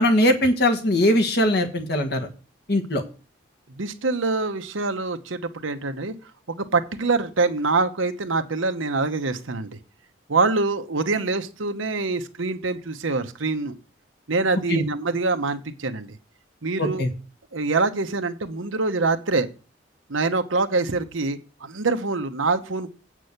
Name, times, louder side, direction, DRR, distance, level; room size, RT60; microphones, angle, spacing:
voice 1, 0.0-2.3 2.7-3.0 14.7-14.8 16.8-17.1, left 1 dB, 55° left, 4 dB, 1.6 m, -20 dB
voice 2, 3.7-6.1 6.5-9.8 10.3-13.8 14.3-16.1 16.6-17.1 17.5-19.5 20.1-22.9, right 3 dB, 85° right, 8 dB, 1.0 m, -25 dB
8.4 x 6.2 x 6.6 m, 0.35 s
head